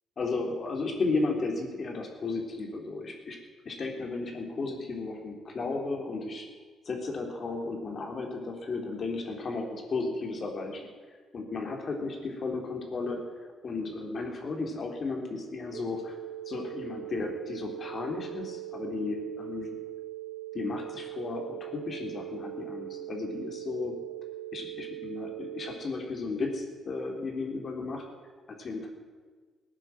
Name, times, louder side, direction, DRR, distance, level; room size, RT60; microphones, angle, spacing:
voice 1, 0.2-3.4 3.7-6.5 6.9-10.8 11.3-13.2 13.6-16.2 16.5-19.7 20.5-23.9 24.5-28.1 28.5-28.9, left 3 dB, 45° left, 1 dB, 3.6 m, -34 dB
sound 1, 15.7-25.7, right 16 dB, 80° right, 3.0 m, -41 dB
18.5 x 9.9 x 7.6 m, 1.4 s
cardioid pair, 90°, 0 cm